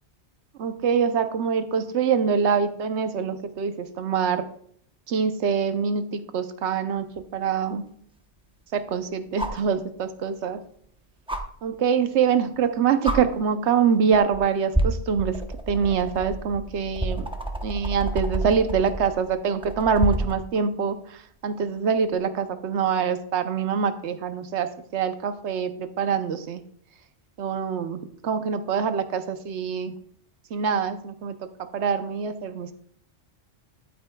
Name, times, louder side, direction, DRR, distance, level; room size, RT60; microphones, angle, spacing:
voice 1, 0.6-4.4 5.1-7.0 7.3-7.8 8.7-10.6 11.6-15.4 15.7-17.3 17.6-26.6 27.4-29.9 30.5-32.7, right 6 dB, 80° right, 10 dB, 1.0 m, -25 dB
sound 1, 7.1-7.2 9.4-9.7 11.3-11.4 12.6-12.7 13.0-13.2 14.1-14.4 14.7-20.4 22.1-22.2, right 1 dB, 5° right, 0.6 m, -28 dB
13.0 x 8.3 x 2.3 m, 0.64 s
omnidirectional pair, 1.1 m